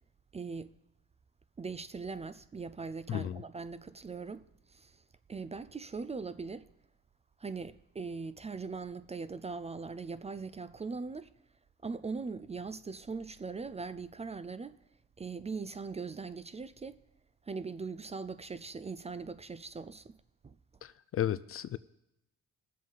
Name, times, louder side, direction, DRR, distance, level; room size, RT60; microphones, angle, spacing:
voice 1, 0.3-0.7 1.6-5.0 5.3-6.7 7.4-11.3 11.8-14.8 15.2-17.0 17.5-20.1 20.4-20.5, right 4 dB, 20° right, 0.4 m, -40 dB
voice 2, 3.1-3.4 20.8-21.8, left 11 dB, 50° left, 0.4 m, -34 dB
19.5 x 7.5 x 3.9 m
cardioid pair, 90°, 30 cm